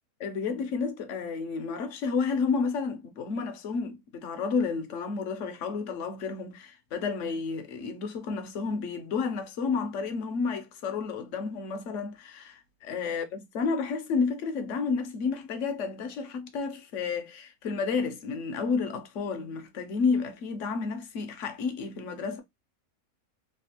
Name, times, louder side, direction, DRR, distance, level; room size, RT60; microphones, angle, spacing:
voice 1, 0.2-22.4, left 5 dB, 65° left, 1.0 m, -31 dB
3.3 x 2.4 x 2.8 m
omnidirectional pair, 1.5 m